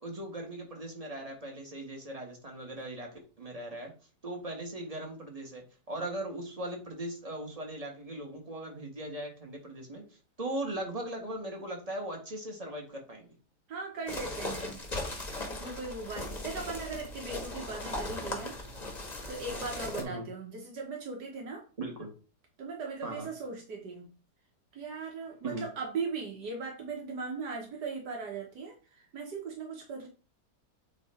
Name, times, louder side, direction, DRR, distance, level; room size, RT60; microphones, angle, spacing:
voice 1, 0.0-3.1 3.4-3.9 4.2-10.0 10.4-13.3 20.0-20.3 21.8-22.1 23.0-23.3 25.4-25.7, right 1 dB, 25° right, 1 dB, 1.6 m, -39 dB
voice 2, 13.7-14.8 15.5-18.5 19.3-21.6 22.6-24.1 24.7-30.1, right 4 dB, 80° right, 0 dB, 1.9 m, -39 dB
sound 1, 14.1-20.0, left 2 dB, 25° left, 1.4 m, -38 dB
8.7 x 3.0 x 4.4 m, 0.35 s
omnidirectional pair, 1.8 m